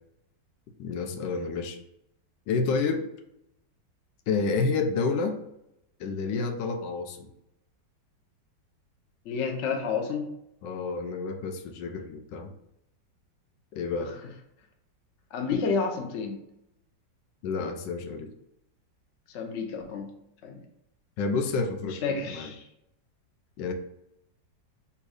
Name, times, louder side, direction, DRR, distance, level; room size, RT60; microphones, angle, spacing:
voice 1, 0.8-1.8 2.5-3.0 4.3-5.4 6.0-7.3 10.6-12.5 13.7-14.1 17.4-18.3 21.2-22.5 23.6-23.7, left 4 dB, 80° left, 5 dB, 1.2 m, -29 dB
voice 2, 9.2-10.3 14.0-14.1 15.3-16.4 19.3-20.1 20.4-20.6 22.0-22.7, left 5 dB, 60° left, 2 dB, 0.7 m, -30 dB
3.5 x 2.8 x 4.7 m, 0.82 s
omnidirectional pair, 2.0 m